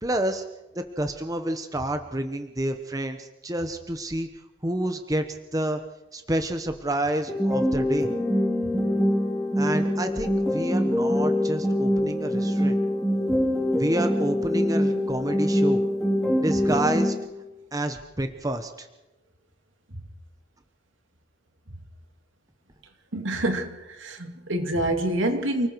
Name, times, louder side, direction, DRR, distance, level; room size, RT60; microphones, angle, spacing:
voice 1, 0.0-0.4 0.7-4.3 4.6-5.8 6.1-8.1 9.6-12.8 13.7-15.8 16.4-17.1 17.7-18.9, right 1 dB, 20° right, 1.0 m, -29 dB
sound 1, 7.3-17.3, left 1 dB, ahead, 3.2 m, -24 dB
voice 2, 23.1-25.7, right 1 dB, 75° right, 2.5 m, -27 dB
29.0 x 20.0 x 4.7 m
head